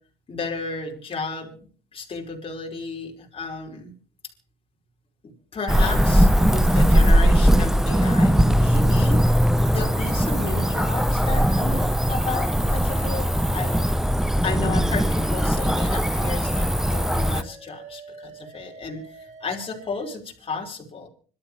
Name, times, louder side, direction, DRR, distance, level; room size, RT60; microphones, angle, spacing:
voice 1, 0.3-4.0 5.2-9.2 9.7-13.9 14.4-19.0 19.4-21.1, left 4 dB, 35° left, 1 dB, 5.2 m, -33 dB
Cricket / Motor vehicle (road), 5.7-17.4, equal, 5° right, 0.7 m, -20 dB
sound 1, 14.3-20.2, right 4 dB, 45° right, 4.2 m, -47 dB
26.0 x 13.0 x 3.3 m, 0.43 s
cardioid pair, 110°, 17 cm